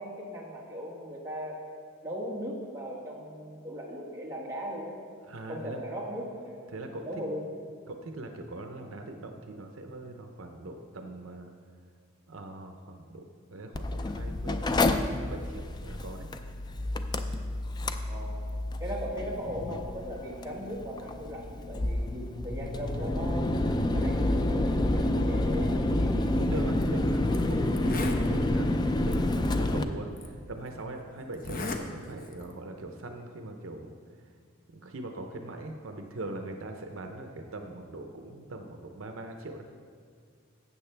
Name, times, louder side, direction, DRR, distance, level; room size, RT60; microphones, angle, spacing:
voice 1, 0.0-1.6 2.0-5.0 5.5-7.5 18.1-18.4 18.8-23.5 23.8-26.4, equal, 15° right, -4 dB, 1.5 m, -38 dB
voice 2, 5.2-5.8 6.7-7.1 7.9-11.5 12.3-16.3 25.1-25.2 26.4-28.7 29.0-33.9 34.7-39.6, right 2 dB, 75° right, 4 dB, 0.7 m, -41 dB
Mechanical fan, 13.7-29.8, left 1 dB, 20° left, 0.4 m, -29 dB
Zipper (clothing), 26.7-26.8 27.3-27.4 27.7-28.3 29.1-29.2 30.2-30.3 31.3-31.8 32.2-32.5, left 3 dB, 45° left, 0.8 m, -36 dB
12.5 x 8.1 x 3.4 m, 2.1 s
head